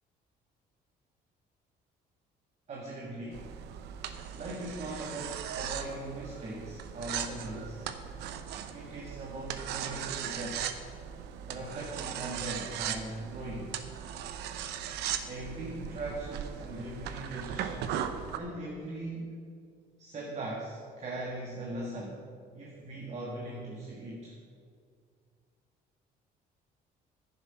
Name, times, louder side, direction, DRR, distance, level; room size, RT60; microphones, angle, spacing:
voice 1, 2.7-3.5 4.3-7.9 8.7-10.7 11.5-13.8 15.3-18.0 18.4-19.4 20.0-22.3 22.5-24.4, right 2 dB, 40° right, -2 dB, 1.7 m, -40 dB
sound 1, 3.3-18.4, right 9 dB, 85° right, 0.8 m, -38 dB
10.5 x 10.0 x 5.8 m, 2.2 s
cardioid pair, 110°, 17 cm